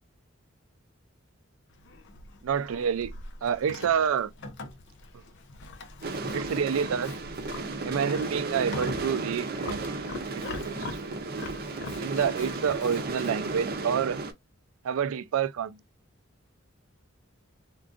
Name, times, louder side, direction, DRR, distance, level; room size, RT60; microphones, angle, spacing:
Livestock farm animals working animals, 1.7-13.4, left 2 dB, 60° left, 0.6 m, -43 dB
voice 1, 2.4-3.1 3.4-4.3 6.3-7.1 7.8-9.8 10.3-11.2 12.0-14.2 14.8-15.8, right 7 dB, 90° right, 0.4 m, -28 dB
sound 1, 6.0-14.3, right 3 dB, 50° right, 0.6 m, -34 dB
3.7 x 2.3 x 2.5 m
head